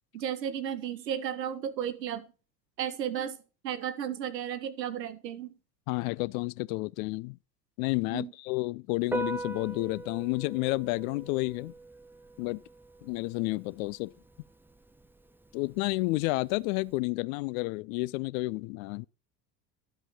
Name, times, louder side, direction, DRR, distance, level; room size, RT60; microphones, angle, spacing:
voice 1, 0.1-2.3 2.8-3.4 3.6-5.5 8.1-8.3, right 9 dB, 80° right, 1.2 m, -34 dB
voice 2, 5.9-7.4 7.8-11.7 12.4-12.6 13.0-14.1 15.5-19.1, left 23 dB, 55° left, 0.6 m, -31 dB
Piano, 9.0-17.0, right 2 dB, 5° right, 0.9 m, -42 dB
12.5 x 5.3 x 5.8 m
hypercardioid pair, 75°, 48 cm